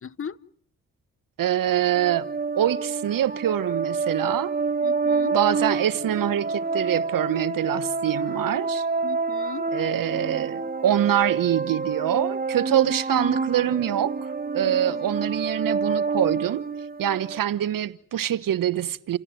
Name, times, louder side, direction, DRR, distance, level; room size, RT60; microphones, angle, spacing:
voice 1, 0.0-0.4 4.8-5.4 9.0-9.7 14.7-15.1, left 7 dB, 35° left, 1.0 m, -37 dB
voice 2, 1.4-2.3 2.5-4.5 5.3-8.8 9.7-14.2 14.5-16.6 17.0-19.2, right 11 dB, 65° right, 1.2 m, -24 dB
sound 1, 2.0-17.4, right 4 dB, 25° right, 1.6 m, -28 dB
29.0 x 17.0 x 9.4 m
supercardioid pair, 45°, 36 cm